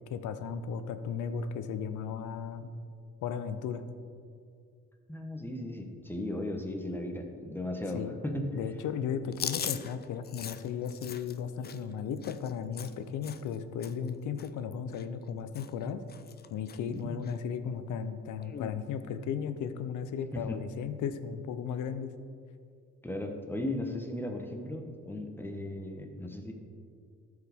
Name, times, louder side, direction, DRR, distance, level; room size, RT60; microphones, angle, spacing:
voice 1, 0.1-2.7 3.2-3.8 7.9-8.2 8.5-16.0 16.5-22.1, left 7 dB, 80° left, 11 dB, 0.6 m, -35 dB
voice 2, 5.1-8.5 16.9-17.1 20.3-20.6 23.0-26.5, left 1 dB, 5° left, 3 dB, 1.0 m, -36 dB
Chewing mastication, 9.3-13.6 13.8-14.1 14.4-15.3 15.5-15.8 16.1-16.8 17.2-17.3 18.4-18.8, left 8 dB, 35° left, 0.4 m, -40 dB
13.0 x 4.9 x 3.5 m, 2.3 s
cardioid pair, 90°, 30 cm